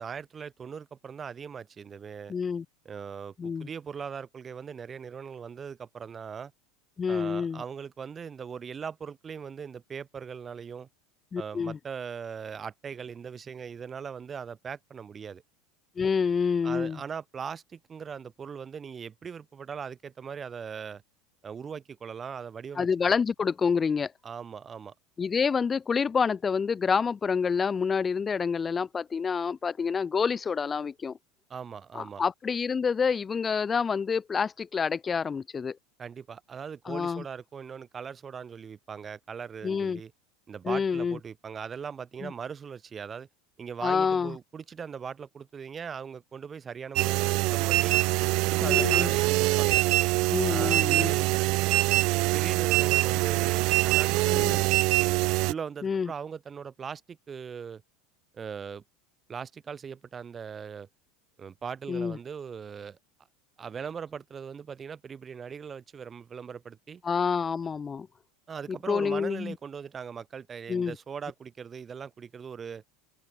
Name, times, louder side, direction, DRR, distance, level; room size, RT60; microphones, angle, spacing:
voice 1, 0.0-2.3 2.8-6.5 7.1-10.9 11.4-15.4 16.6-21.0 21.4-22.9 24.2-24.9 31.5-32.2 36.0-40.1 40.5-43.3 43.6-48.0 48.4-49.8 50.5-51.3 52.3-54.5 55.4-57.8 58.3-58.8 59.3-60.9 61.4-63.0 63.6-67.0 68.5-72.8, right 6 dB, 15° right, 4.0 m, -40 dB
voice 2, 2.3-2.6 3.4-3.7 7.0-7.6 11.3-11.8 16.0-17.0 22.8-24.1 25.2-31.2 31.9-35.8 36.9-37.2 39.6-40.0 40.6-41.2 42.2-42.3 43.8-44.4 48.6-49.1 50.3-51.1 54.3-54.6 55.8-56.1 61.9-62.2 67.0-68.1 68.9-69.5 70.7-70.9, left 6 dB, 15° left, 0.9 m, -28 dB
sound 1, 47.0-55.5, right 24 dB, 45° right, 0.7 m, -24 dB
open air
supercardioid pair, 170°, 0 cm